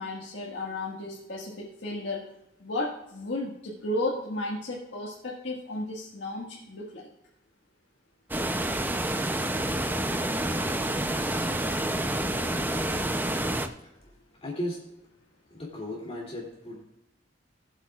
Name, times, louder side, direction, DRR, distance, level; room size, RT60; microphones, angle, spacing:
voice 1, 0.0-2.2 2.6-7.1, left 2 dB, 75° left, -4 dB, 1.7 m, -34 dB
sound 1, 8.3-13.7, right 1 dB, 10° right, 0.6 m, -28 dB
voice 2, 13.8-14.9 15.5-16.8, left 1 dB, 35° left, -3 dB, 2.8 m, -37 dB
19.0 x 8.1 x 2.4 m, 0.84 s
head